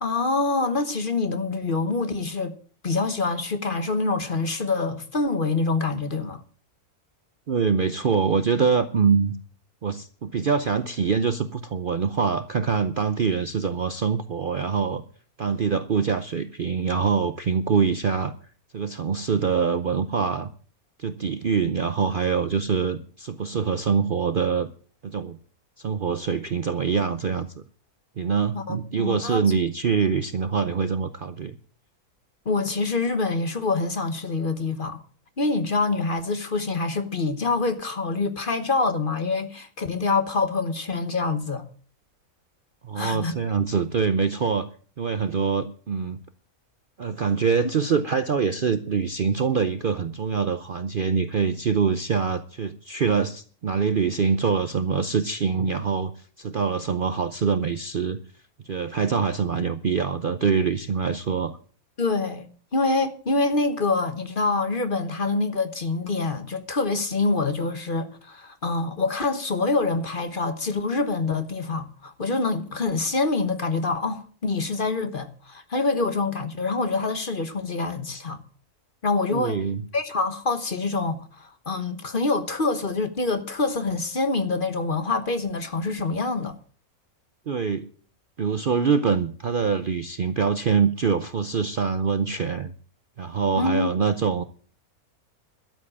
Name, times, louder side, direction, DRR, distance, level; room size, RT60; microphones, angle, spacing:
voice 1, 0.0-2.5 2.8-6.4 28.5-29.4 32.4-35.0 35.4-41.6 42.9-43.4 62.0-78.4 79.0-79.6 79.9-86.6 93.5-93.9, left 3 dB, 40° left, 1.2 m, -26 dB
voice 2, 7.5-9.3 9.8-15.0 15.4-18.3 18.7-20.5 21.0-24.7 25.0-25.4 25.8-27.5 28.2-31.6 42.8-44.7 45.0-46.2 47.0-56.1 56.4-58.2 58.6-61.6 79.3-79.8 87.5-87.9 88.4-92.7 93.2-94.4, right 6 dB, 50° right, 0.7 m, -24 dB
13.0 x 7.5 x 8.6 m
omnidirectional pair, 1.6 m